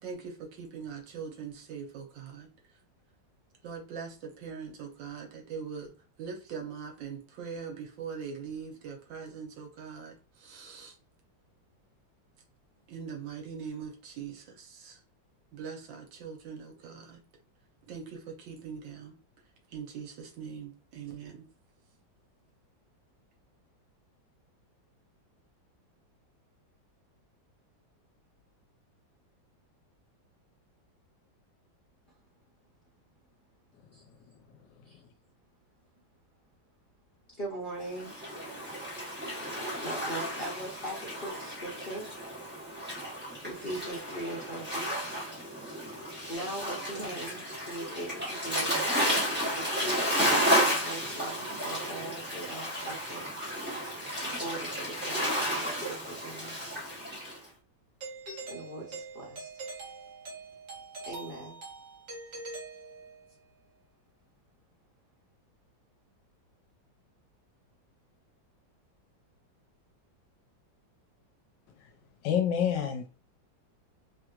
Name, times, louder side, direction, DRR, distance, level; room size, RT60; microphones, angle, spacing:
voice 1, 0.0-2.5 3.6-5.9 6.2-11.0 12.9-15.0 15.5-17.2 17.9-19.2 19.7-21.5, right 6 dB, 80° right, 1.5 m, -42 dB
voice 2, 37.4-38.1 39.8-42.1 43.4-45.0 46.3-48.8 49.5-53.3 54.2-56.8 58.5-59.5 61.1-61.6, right 1 dB, 50° left, 0.7 m, -40 dB
Waves surf, 37.9-57.4, equal, 15° right, 0.4 m, -32 dB
Doorbell, 58.0-63.4, right 3 dB, 50° right, 0.8 m, -43 dB
voice 3, 72.2-73.1, left 8 dB, 75° left, 1.2 m, -27 dB
3.3 x 2.8 x 2.3 m
omnidirectional pair, 2.1 m